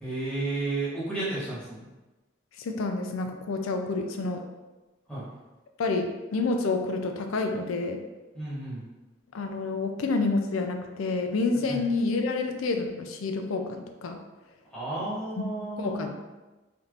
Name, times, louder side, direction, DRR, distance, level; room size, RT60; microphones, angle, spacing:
voice 1, 0.0-1.9 5.1-5.2 8.3-8.8 11.7-11.8 14.7-16.1, right 2 dB, 5° left, -11 dB, 1.4 m, -32 dB
voice 2, 2.6-4.4 5.8-8.0 9.3-14.2 15.4-15.5 15.8-16.1, left 3 dB, 80° left, 5 dB, 0.4 m, -28 dB
3.5 x 2.8 x 2.5 m, 1.1 s
head